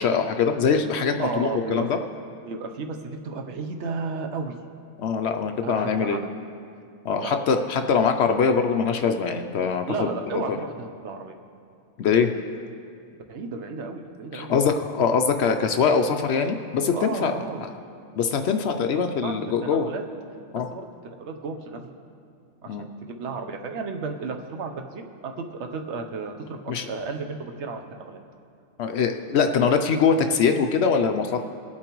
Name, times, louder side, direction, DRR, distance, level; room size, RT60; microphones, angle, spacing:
voice 1, 0.0-2.0 5.0-6.2 7.0-10.6 12.0-12.3 14.3-17.3 18.2-19.9 20.5-20.7 22.7-22.9 26.7-26.9 28.8-31.4, left 6 dB, 65° left, 6 dB, 0.7 m, -23 dB
voice 2, 1.2-1.9 2.5-4.5 5.6-6.3 7.2-7.4 9.9-11.4 13.3-14.6 16.9-17.6 19.2-19.3 19.6-20.0 20.5-21.9 22.6-22.9 23.2-28.2, right 4 dB, 65° right, 4 dB, 1.1 m, -33 dB
20.0 x 8.5 x 3.0 m, 2.4 s
omnidirectional pair, 1.3 m